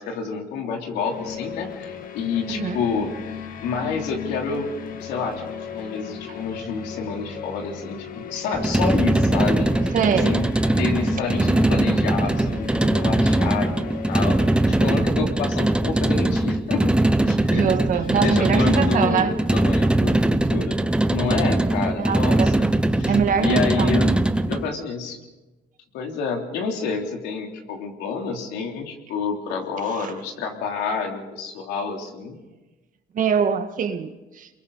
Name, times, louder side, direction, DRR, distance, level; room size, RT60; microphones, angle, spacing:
voice 1, 0.0-3.1 3.6-4.7 5.0-5.4 5.7-9.8 10.2-10.4 10.8-13.7 14.1-14.4 14.7-16.9 17.3-17.7 18.2-20.7 21.1-22.7 23.0-25.2 25.9-32.4, left 5 dB, 90° left, 2 dB, 3.4 m, -28 dB
sound 1, 1.0-15.1, left 8 dB, 55° left, 1.6 m, -36 dB
sound 2, 8.5-24.7, right 1 dB, 5° right, 0.8 m, -21 dB
voice 2, 9.9-10.4 17.5-19.3 22.0-22.5 23.1-24.0 29.9-30.1 33.1-34.5, right 7 dB, 50° right, 7 dB, 1.8 m, -23 dB
28.0 x 22.5 x 4.1 m, 1.1 s
cardioid pair, 110°, 17 cm